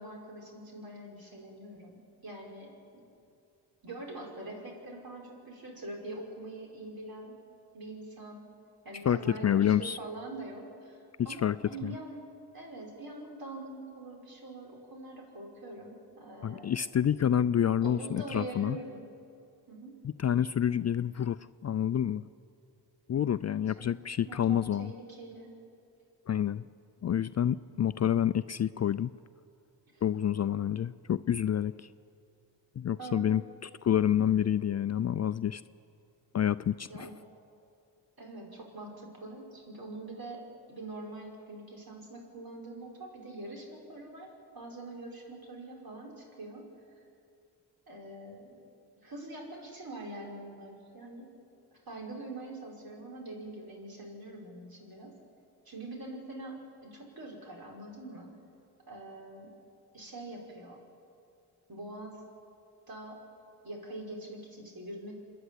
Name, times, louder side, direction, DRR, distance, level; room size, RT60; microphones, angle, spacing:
voice 1, 0.0-3.0 3.8-7.4 7.7-8.4 8.8-12.3 12.5-16.7 17.8-19.1 19.7-20.0 23.8-23.9 24.3-25.5 27.7-27.8 29.9-30.0 33.0-33.3 36.9-37.1 38.2-44.3 44.5-46.7 47.9-48.6 49.0-51.3 51.9-55.2 55.7-58.3 58.9-59.5 59.9-60.8 61.7-62.2 62.9-63.2 63.6-65.1, right 2 dB, 50° right, 0 dB, 5.5 m, -44 dB
voice 2, 9.4-10.0 11.4-11.6 11.8-11.9 16.4-18.8 20.0-22.2 23.1-24.9 26.3-26.6 27.0-29.1 30.0-31.9 32.8-35.6 36.3-37.1, left 9 dB, 40° left, 14 dB, 0.4 m, -28 dB
27.0 x 10.5 x 10.0 m, 2.6 s
cardioid pair, 60°, 44 cm